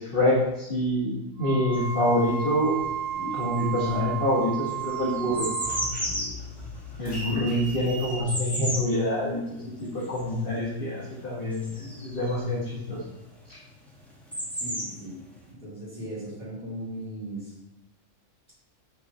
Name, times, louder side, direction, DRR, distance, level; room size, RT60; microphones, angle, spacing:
voice 1, 0.0-2.8 3.3-5.5 7.0-13.0 13.5-13.6, left 1 dB, 45° left, -7 dB, 1.5 m, -26 dB
Wind instrument woodwind instrument, 1.4-5.9, right 8 dB, 75° right, 1.5 m, -33 dB
sound 1, 1.7-2.9 3.2-12.5 13.5-13.6 13.8-15.4, equal, ahead, 1.5 m, -34 dB
sound 2, 3.0-4.5 4.8-8.2, equal, 80° left, 2.6 m, -39 dB
voice 2, 14.5-15.2 15.5-17.5, right 1 dB, 40° right, -7 dB, 2.5 m, -37 dB
5.9 x 4.8 x 5.5 m, 0.90 s
omnidirectional pair, 1.4 m